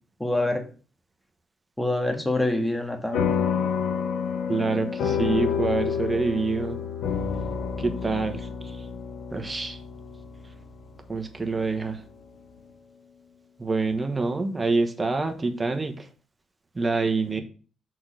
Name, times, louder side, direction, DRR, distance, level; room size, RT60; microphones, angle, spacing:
voice 1, 0.2-0.7 1.8-3.3, left 1 dB, 10° left, 4 dB, 1.6 m, -26 dB
sound 1, 3.1-11.9, left 7 dB, 80° left, 1.2 m, -29 dB
voice 2, 4.5-6.8 7.8-8.4 9.3-9.8 11.1-12.0 13.6-16.0 16.7-17.4, right 3 dB, 20° right, 6 dB, 1.2 m, -26 dB
6.2 x 4.0 x 6.2 m, 0.38 s
cardioid pair, 90°, 0 cm